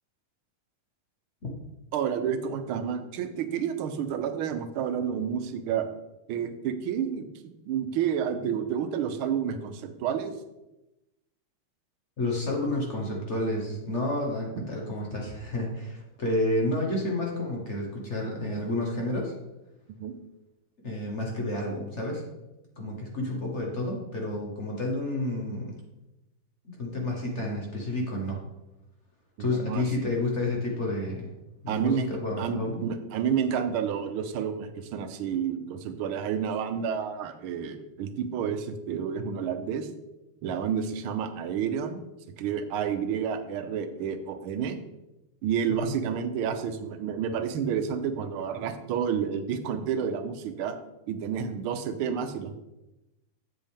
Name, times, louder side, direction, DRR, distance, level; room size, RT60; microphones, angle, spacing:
voice 1, 1.9-5.9 6.3-10.3 14.6-14.7 20.0-20.1 29.4-29.9 31.7-32.1 32.4-39.9 40.4-42.0 42.4-44.8 45.4-50.7 51.1-52.5, right 8 dB, 80° right, 9 dB, 1.5 m, -30 dB
voice 2, 12.2-19.3 20.8-22.2 22.8-25.8 26.7-28.4 29.4-31.3 31.6-32.8 45.8-45.9, left 1 dB, 40° left, -1 dB, 1.2 m, -30 dB
7.7 x 7.2 x 3.5 m, 0.96 s
omnidirectional pair, 2.3 m